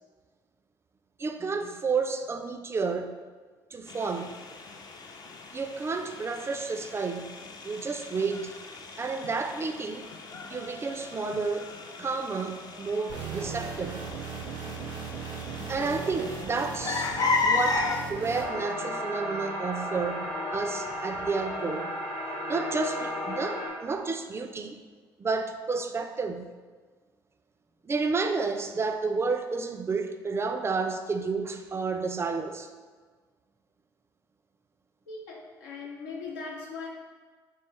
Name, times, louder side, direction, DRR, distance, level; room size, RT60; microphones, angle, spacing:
voice 1, 1.2-3.2 3.7-4.3 5.5-7.3 7.6-8.5 9.0-10.1 10.5-11.7 12.0-14.0 15.7-21.9 22.5-24.8 25.2-26.5 27.8-32.7, right 4 dB, 25° right, 7 dB, 0.3 m, -31 dB
sound 1, 3.9-18.0, left 3 dB, 40° left, 0.5 m, -35 dB
sound 2, 13.1-18.4, right 5 dB, 85° right, 0.6 m, -37 dB
sound 3, 18.3-23.7, left 1 dB, 55° left, 1.0 m, -34 dB
voice 2, 35.1-36.9, left 4 dB, 85° left, -3 dB, 0.6 m, -39 dB
3.2 x 3.1 x 3.2 m, 1.4 s
hypercardioid pair, 55°, 10 cm